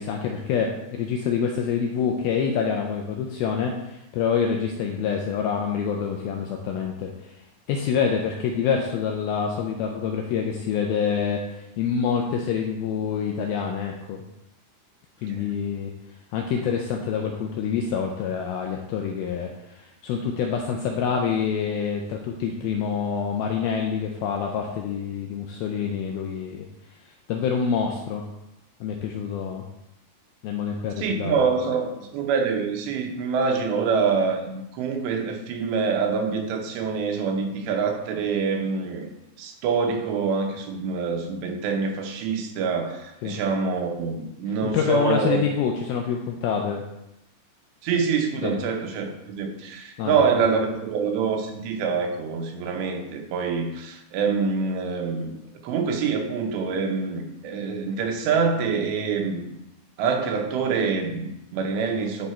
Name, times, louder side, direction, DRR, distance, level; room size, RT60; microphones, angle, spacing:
voice 1, 0.0-7.3 7.7-14.2 15.2-15.9 16.3-26.7 27.3-28.2 28.8-29.6 30.4-31.3 43.2-43.4 44.6-46.8 48.4-48.6 50.0-50.2, left 7 dB, 80° left, 2 dB, 2.2 m, -26 dB
voice 2, 31.0-39.1 39.4-45.4 47.8-59.5 60.0-62.3, right 5 dB, 80° right, 3 dB, 3.2 m, -26 dB
11.5 x 4.1 x 4.3 m, 0.88 s
omnidirectional pair, 5.0 m